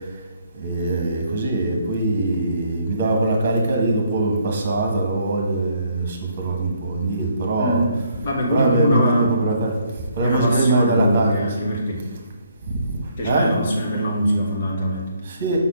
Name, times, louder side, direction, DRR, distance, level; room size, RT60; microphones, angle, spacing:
voice 1, 0.5-7.8 8.5-9.7 10.2-11.7 12.6-13.0 13.2-13.5 15.3-15.6, right 2 dB, 35° right, 2 dB, 1.4 m, -22 dB
voice 2, 7.6-7.9 8.2-9.4 10.2-12.0 13.2-15.1, equal, 40° left, -1 dB, 1.5 m, -23 dB
5.7 x 4.1 x 5.1 m, 1.3 s
figure-of-eight pair, 140°, 0 cm